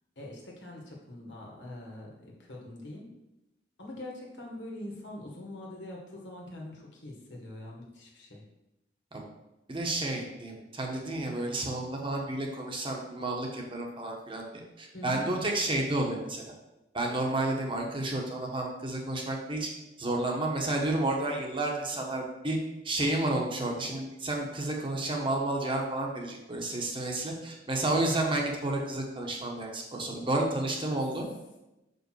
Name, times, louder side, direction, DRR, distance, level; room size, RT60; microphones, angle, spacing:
voice 1, 0.2-3.1 3.8-8.4 14.9-15.5 30.9-31.0, left 1 dB, 80° left, -2 dB, 1.9 m, -43 dB
voice 2, 9.7-14.4 14.8-16.4 16.9-19.7 20.0-22.6 22.8-31.2, right 2 dB, 30° right, 0 dB, 1.2 m, -31 dB
6.0 x 5.3 x 4.7 m, 0.94 s
head